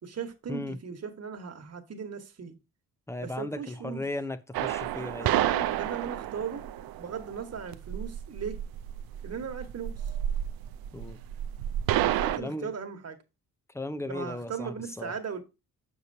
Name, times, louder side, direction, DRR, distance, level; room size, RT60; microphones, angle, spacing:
voice 1, 0.0-2.6 3.2-4.0 4.9-6.6 7.0-8.6 9.2-10.1 12.0-13.2 14.0-15.4, right 6 dB, 45° right, 1.4 m, -38 dB
voice 2, 3.1-5.3 10.9-11.2 12.4-12.7 13.7-15.1, left 2 dB, 10° left, 0.6 m, -36 dB
sound 1, 4.5-12.4, right 12 dB, 85° right, 0.5 m, -30 dB
6.8 x 6.6 x 2.7 m
cardioid pair, 80°, 35 cm